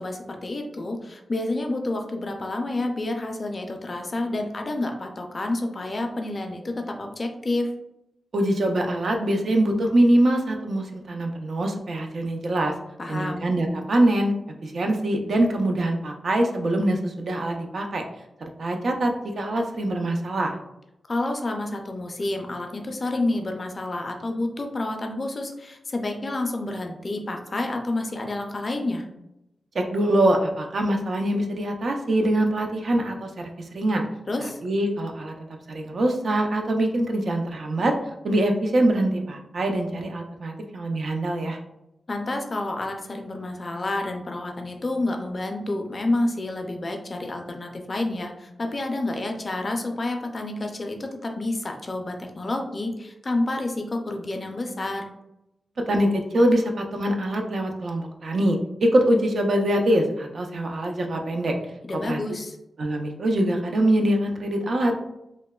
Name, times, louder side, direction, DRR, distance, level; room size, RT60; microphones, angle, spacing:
voice 1, 0.0-7.7 13.0-13.5 21.1-29.1 34.3-34.6 42.1-55.0 61.8-62.6, left 2 dB, 40° left, 3 dB, 0.3 m, -29 dB
voice 2, 8.3-12.7 13.1-14.3 14.6-18.0 18.6-20.6 29.8-33.5 33.7-34.1 34.4-35.3 35.7-37.9 38.2-41.6 55.9-61.5 62.1-62.2 62.8-64.9, right 1 dB, 65° right, 3 dB, 0.4 m, -23 dB
3.0 x 2.0 x 2.2 m, 0.86 s
wide cardioid pair, 115°, 0 cm